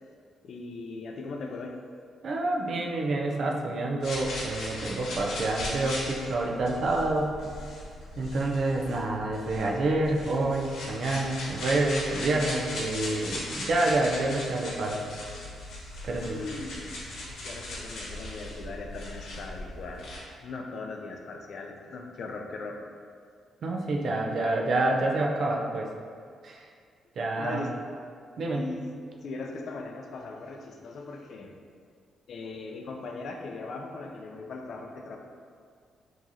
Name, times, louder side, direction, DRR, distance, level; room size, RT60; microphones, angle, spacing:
voice 1, 0.4-1.8 16.3-20.1 20.4-22.8 27.4-27.7 28.5-28.9 29.2-31.5 32.3-35.2, left 3 dB, 55° left, 2 dB, 0.4 m, -39 dB
voice 2, 2.2-7.4 8.2-15.0 16.0-16.4 23.6-25.9 26.4-26.7 27.2-27.6 28.4-28.7, right 2 dB, 55° right, 0 dB, 0.5 m, -28 dB
sound 1, 4.0-20.2, left 1 dB, 75° left, 0.9 m, -38 dB
4.8 x 2.9 x 2.7 m, 2.1 s
cardioid pair, 125°, 0 cm